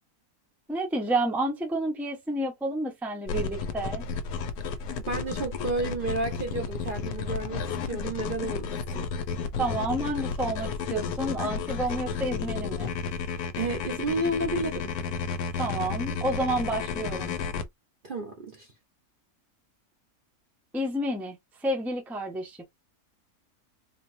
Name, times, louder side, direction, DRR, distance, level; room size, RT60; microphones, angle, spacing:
voice 1, 0.7-4.0 9.5-12.9 15.5-17.4 20.7-22.6, right 1 dB, ahead, 0.8 m, -30 dB
sound 1, 3.3-17.6, left 5 dB, 80° left, 1.2 m, -32 dB
voice 2, 5.1-9.1 13.6-14.9 18.0-18.7, right 2 dB, 40° right, 0.9 m, -31 dB
4.1 x 2.9 x 2.6 m
omnidirectional pair, 1.6 m